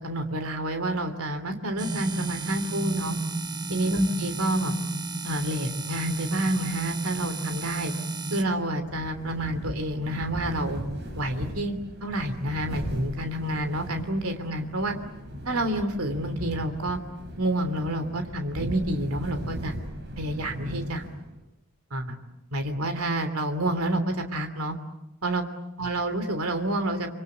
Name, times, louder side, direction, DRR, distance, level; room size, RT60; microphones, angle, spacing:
voice 1, 0.0-3.2 3.7-4.7 5.2-7.9 8.3-10.8 11.1-15.0 15.4-17.0 17.4-19.8 20.2-21.0 21.9-22.2 22.5-24.7 25.2-25.4 25.8-27.1, right 1 dB, 75° right, 7 dB, 3.0 m, -28 dB
sound 1, 1.8-8.4, right 3 dB, 20° right, 1.2 m, -33 dB
sound 2, 8.7-21.4, equal, 50° right, 6.4 m, -38 dB
26.0 x 25.5 x 8.6 m, 0.85 s
head